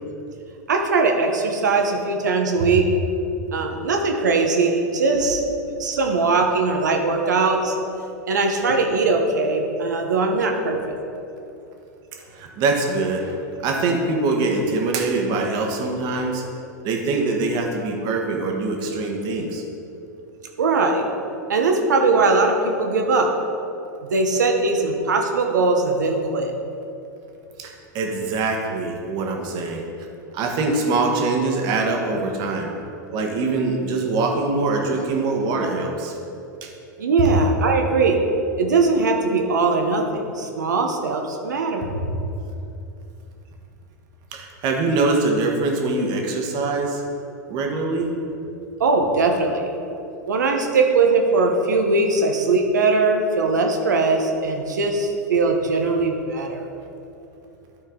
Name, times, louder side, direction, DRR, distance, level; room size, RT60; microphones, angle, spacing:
voice 1, 0.7-2.9 3.5-5.4 5.8-7.7 8.3-10.9 20.6-21.0 21.5-23.3 24.0-26.5 37.0-38.2 38.6-41.9 48.8-49.7 50.3-56.7, right 3 dB, 85° right, 3 dB, 1.0 m, -20 dB
voice 2, 12.3-16.4 16.8-19.6 27.6-29.9 30.3-32.7 33.1-36.1 36.6-36.7 41.9-42.0 44.3-47.0 47.5-48.1, right 3 dB, 50° right, 1 dB, 1.4 m, -23 dB
12.0 x 4.5 x 3.8 m, 2.7 s
hypercardioid pair, 100°, 9 cm